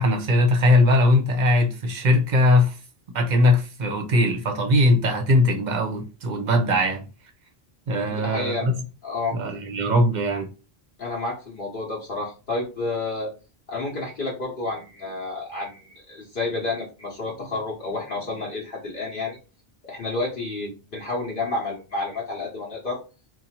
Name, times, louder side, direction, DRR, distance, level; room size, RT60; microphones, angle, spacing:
voice 1, 0.0-2.8 3.1-7.0 7.9-8.8 9.3-10.5, left 1 dB, 50° right, 0.7 m, -20 dB
voice 2, 8.0-8.7 9.0-9.4 11.0-13.3 13.7-19.4 19.8-23.0, left 3 dB, 60° left, 1.0 m, -30 dB
2.7 x 2.3 x 4.1 m
omnidirectional pair, 1.1 m